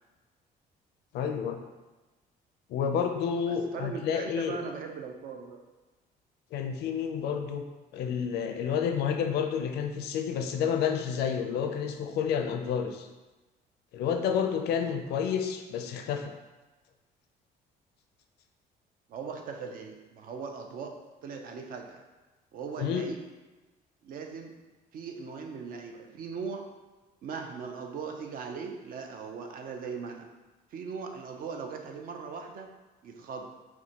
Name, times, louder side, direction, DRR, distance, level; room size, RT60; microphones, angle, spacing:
voice 1, 1.1-1.6 2.7-4.6 6.5-7.6 7.9-13.1 13.9-16.3 22.8-23.1, left 7 dB, 75° left, 6 dB, 0.5 m, -30 dB
voice 2, 3.5-5.6 19.1-21.0 21.2-22.0 22.5-23.2 24.0-24.5 24.9-26.7 27.2-30.3 30.7-32.7 33.0-33.5, right 5 dB, 55° right, 3 dB, 0.6 m, -39 dB
5.9 x 2.2 x 2.9 m, 1.2 s
cardioid pair, 110°, 17 cm